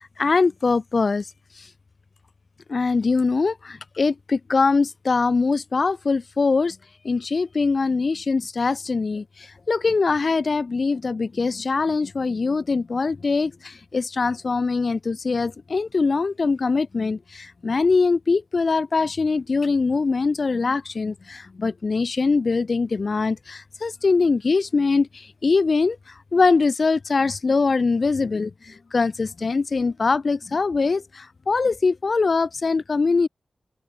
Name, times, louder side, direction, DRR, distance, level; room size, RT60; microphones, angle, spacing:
voice 1, 0.2-1.3 1.6-1.7 2.7-6.8 7.0-33.3, left 4 dB, 50° left, 3.1 m, -22 dB
wide cardioid pair, 95°, 0 cm